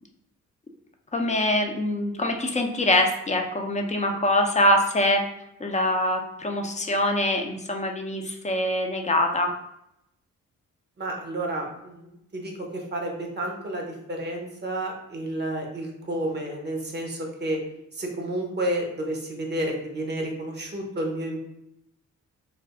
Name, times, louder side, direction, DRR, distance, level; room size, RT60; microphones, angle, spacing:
voice 1, 1.1-5.2 5.6-9.5, left 1 dB, 25° left, 3 dB, 0.4 m, -24 dB
voice 2, 11.0-17.6 18.0-21.5, right 1 dB, 35° right, 1 dB, 0.7 m, -31 dB
2.5 x 2.4 x 3.5 m, 0.82 s
cardioid pair, 80°, 30 cm